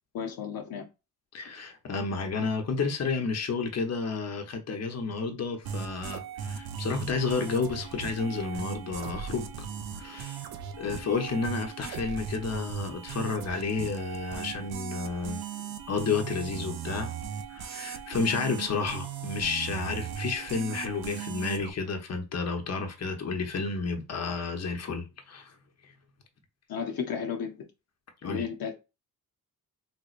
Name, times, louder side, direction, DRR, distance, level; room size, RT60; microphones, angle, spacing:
voice 1, 0.1-0.8 26.7-27.6 28.2-28.7, left 7 dB, 75° left, 0.8 m, -33 dB
voice 2, 1.3-9.7 10.0-10.4 10.8-15.4 15.9-17.1 17.5-25.5 28.2-28.5, left 4 dB, 45° left, 0.9 m, -31 dB
sound 1, 5.7-21.7, right 8 dB, 80° right, 0.6 m, -38 dB
3.4 x 3.0 x 2.4 m
cardioid pair, 85°, 36 cm